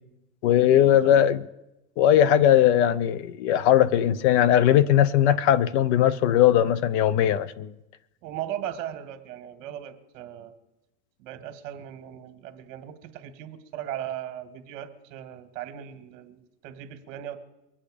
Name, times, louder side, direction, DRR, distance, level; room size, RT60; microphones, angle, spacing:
voice 1, 0.4-1.4 2.0-7.7, left 10 dB, 45° left, 0.6 m, -19 dB
voice 2, 8.2-10.5 11.2-17.4, right 11 dB, 55° right, 1.8 m, -38 dB
24.0 x 8.6 x 5.0 m
supercardioid pair, 140°, 48 cm